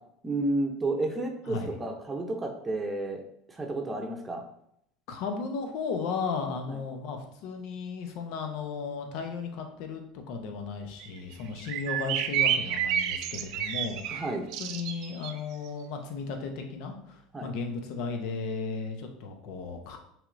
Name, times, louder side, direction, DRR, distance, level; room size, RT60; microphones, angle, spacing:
voice 1, 0.2-3.2 3.5-4.4 6.7-6.8 14.2-14.4 17.3-17.5, right 2 dB, 20° right, 2 dB, 0.8 m, -31 dB
voice 2, 5.1-14.3 14.6-20.0, left 4 dB, 70° left, 5 dB, 0.8 m, -35 dB
sound 1, 11.0-11.1 11.3-11.4 11.6-15.3, right 9 dB, 65° right, 0.5 m, -29 dB
5.7 x 3.5 x 2.6 m, 0.72 s
supercardioid pair, 95°, 0 cm